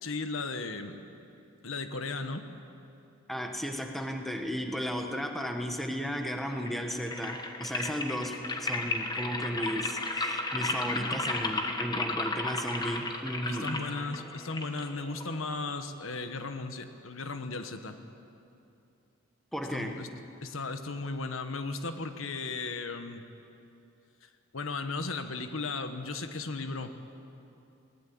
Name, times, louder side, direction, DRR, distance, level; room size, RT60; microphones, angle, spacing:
voice 1, 0.0-1.0 1.6-2.5 13.5-18.0 19.7-20.1 20.4-23.2 24.2-27.1, left 3 dB, 80° left, 8 dB, 1.3 m, -36 dB
voice 2, 3.3-13.7 19.5-20.0, equal, ahead, 3 dB, 1.4 m, -34 dB
sound 1, 6.5-15.5, left 2 dB, 20° left, 1.3 m, -34 dB
21.5 x 18.5 x 8.7 m, 2.7 s
head